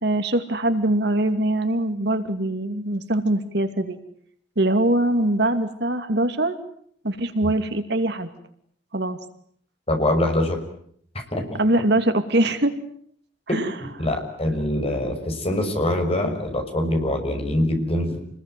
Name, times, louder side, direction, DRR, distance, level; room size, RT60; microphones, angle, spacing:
voice 1, 0.0-4.0 4.6-6.6 7.0-8.3 8.9-9.2 11.6-12.7 13.5-13.7, right 1 dB, 65° right, 8 dB, 2.6 m, -22 dB
voice 2, 9.9-10.6 11.3-11.6 13.5-18.2, left 1 dB, 35° left, 4 dB, 6.1 m, -24 dB
29.0 x 21.0 x 9.3 m, 0.64 s
head